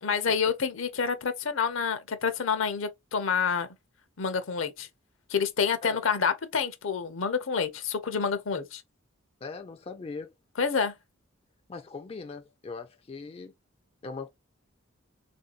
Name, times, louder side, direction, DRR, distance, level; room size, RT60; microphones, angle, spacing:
voice 1, 0.0-3.7 4.2-4.9 5.3-8.8 10.6-10.9, left 6 dB, 65° left, 0.6 m, -28 dB
voice 2, 9.4-10.3 11.7-13.5 14.0-14.3, left 4 dB, 30° left, 0.4 m, -40 dB
3.5 x 2.6 x 2.4 m
head